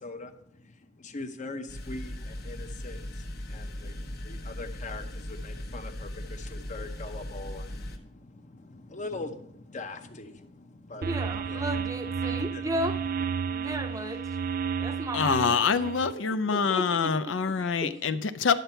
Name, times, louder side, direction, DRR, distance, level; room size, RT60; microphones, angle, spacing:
voice 1, 0.0-11.7 12.0-12.7, left 3 dB, 40° left, 0.8 m, -42 dB
sound 1, 1.7-8.0, left 1 dB, 60° left, 1.1 m, -38 dB
voice 2, 11.0-14.2 14.8-15.6 16.5-18.1, right 1 dB, 20° right, 0.7 m, -35 dB
sound 2, 11.0-16.1, right 6 dB, 50° right, 0.4 m, -32 dB
voice 3, 15.1-18.5, left 5 dB, 80° left, 0.5 m, -25 dB
10.5 x 7.0 x 4.4 m
head